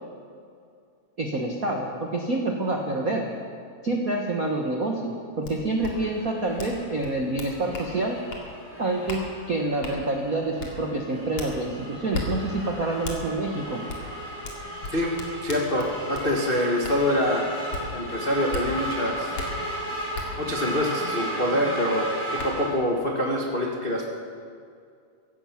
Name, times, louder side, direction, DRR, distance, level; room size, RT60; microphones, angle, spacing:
voice 1, 1.2-3.3 3.8-8.2 8.8-13.8, right 2 dB, 80° right, 1 dB, 0.7 m, -27 dB
sound 1, 5.4-5.5 5.8-5.9 6.6-6.7 7.0-7.9 8.3-8.4 9.1-9.2 9.8-10.0 10.6-10.7 11.4-11.5 12.1-12.3 13.0-13.2 13.9-14.0 14.4-16.3 16.8-17.0 17.7-17.8 18.5-18.6 19.3-19.5 20.1-20.3 21.8-21.9 22.4-22.5, left 3 dB, 50° left, 3.0 m, -34 dB
sound 2, 5.8-22.7, right 1 dB, 5° left, 4.2 m, -35 dB
voice 2, 14.9-17.4 17.9-19.3 20.4-24.0, left 1 dB, 80° left, -1 dB, 0.5 m, -25 dB
16.5 x 15.0 x 5.9 m, 2.3 s
omnidirectional pair, 3.7 m